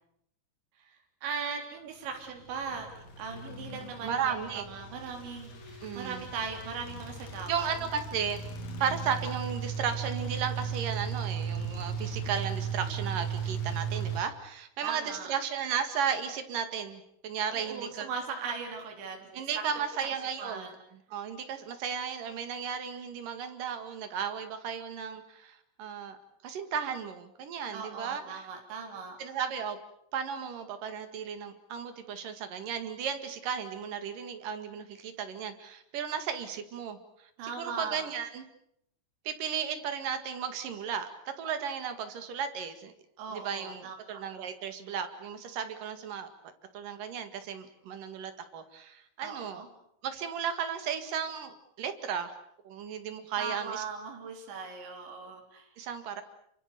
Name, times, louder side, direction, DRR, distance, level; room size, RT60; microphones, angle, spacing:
voice 1, 0.9-7.7 14.8-15.3 17.5-19.6 20.0-20.7 27.7-29.2 37.4-38.0 43.2-44.2 49.2-49.7 53.4-55.7, right 5 dB, 70° right, 2 dB, 5.8 m, -39 dB
sound 1, 2.2-14.2, right 6 dB, 45° left, 3.4 m, -36 dB
voice 2, 4.0-4.7 5.8-6.3 7.5-8.4 8.8-18.1 19.3-20.7 21.1-26.2 26.4-28.5 29.2-29.8 30.1-37.3 37.6-38.4 39.2-41.1 41.4-42.9 43.3-46.3 46.7-49.6 50.0-52.3 52.6-53.8 55.8-56.2, right 7 dB, 55° right, 8 dB, 3.1 m, -35 dB
28.0 x 24.5 x 6.8 m, 0.74 s
omnidirectional pair, 5.5 m